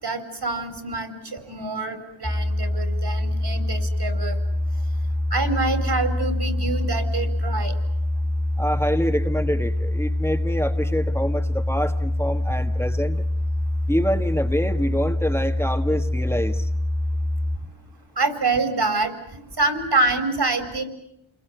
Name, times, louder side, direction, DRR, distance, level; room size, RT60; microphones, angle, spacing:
voice 1, 0.0-4.4 5.3-7.8 18.2-20.8, right 3 dB, 55° right, 8 dB, 4.9 m, -26 dB
sound 1, 2.2-17.6, left 1 dB, 20° left, 2.3 m, -25 dB
voice 2, 8.6-13.2 13.9-16.7, equal, 5° left, 5 dB, 1.6 m, -26 dB
28.5 x 22.0 x 9.2 m, 0.83 s
wide cardioid pair, 70°, 47 cm